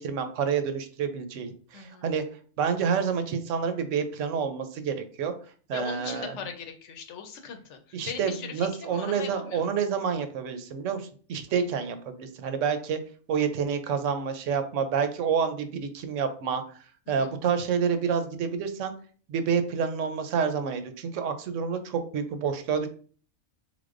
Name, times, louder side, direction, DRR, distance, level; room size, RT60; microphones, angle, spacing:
voice 1, 0.0-2.2 2.6-5.3 5.7-6.3 7.9-13.0 13.3-16.6 17.1-18.9 19.3-22.9, right 6 dB, 80° right, 8 dB, 0.9 m, -28 dB
voice 2, 1.7-2.1 5.7-9.7 17.1-17.3, left 6 dB, 70° left, 6 dB, 1.0 m, -40 dB
3.6 x 3.4 x 2.5 m, 0.42 s
omnidirectional pair, 1.3 m